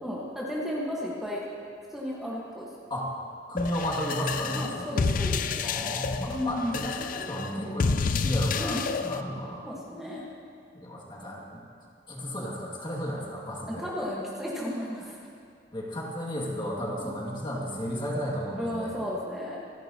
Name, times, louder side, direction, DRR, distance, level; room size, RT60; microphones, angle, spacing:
voice 1, 0.0-1.4 1.9-2.7 4.5-5.6 6.3-6.8 8.6-8.9 9.6-10.3 13.7-15.2 17.0-17.1 18.6-19.6, left 1 dB, ahead, -6 dB, 1.5 m, -34 dB
voice 2, 3.5-4.9 5.6-9.7 10.7-11.6 12.1-13.9 15.7-18.9, equal, 30° left, -4 dB, 2.3 m, -33 dB
sound 1, 3.6-9.2, left 5 dB, 50° left, 0.4 m, -29 dB
27.0 x 10.5 x 3.0 m, 2.4 s
head